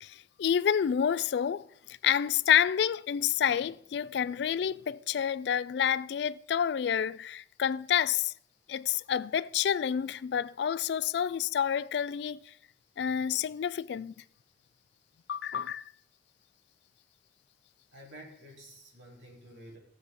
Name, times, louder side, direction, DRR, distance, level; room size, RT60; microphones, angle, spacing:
voice 1, 0.0-1.7 2.0-8.3 8.7-12.5 13.0-14.1 15.3-15.8, left 8 dB, 65° left, 0.3 m, -29 dB
voice 2, 17.9-19.8, right 1 dB, 90° right, 3.3 m, -50 dB
16.5 x 7.4 x 3.7 m
head